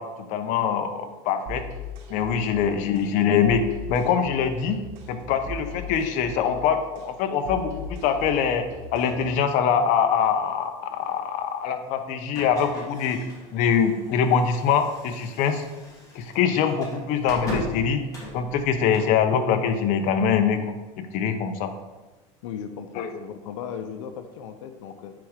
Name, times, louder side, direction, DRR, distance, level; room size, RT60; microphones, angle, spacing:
voice 1, 0.0-1.6 2.1-4.8 5.1-8.6 8.9-13.2 13.5-15.6 16.1-18.1 18.3-21.7 22.9-23.1, left 7 dB, 55° left, 7 dB, 0.9 m, -24 dB
sound 1, 1.5-9.5, left 2 dB, 70° right, 3.1 m, -39 dB
voice 2, 2.4-2.8 22.4-25.1, left 8 dB, 90° left, 8 dB, 0.7 m, -37 dB
sound 2, 12.3-19.2, left 1 dB, 20° left, 2.6 m, -39 dB
9.2 x 4.9 x 5.1 m, 1.2 s
supercardioid pair, 145°, 15 cm